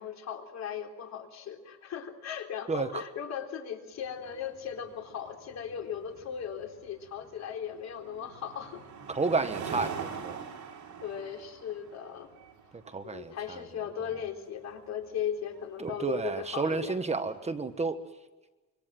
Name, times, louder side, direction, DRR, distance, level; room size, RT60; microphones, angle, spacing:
voice 1, 0.0-8.9 11.0-12.3 13.0-17.0, left 8 dB, 60° left, 3 dB, 3.8 m, -37 dB
sound 1, 4.0-17.5, right 7 dB, 65° right, 5.5 m, -45 dB
voice 2, 9.1-10.4 12.9-13.6 15.8-18.0, right 4 dB, 20° right, 8 dB, 1.3 m, -31 dB
26.0 x 25.0 x 7.6 m, 1.2 s
cardioid pair, 140°, 30 cm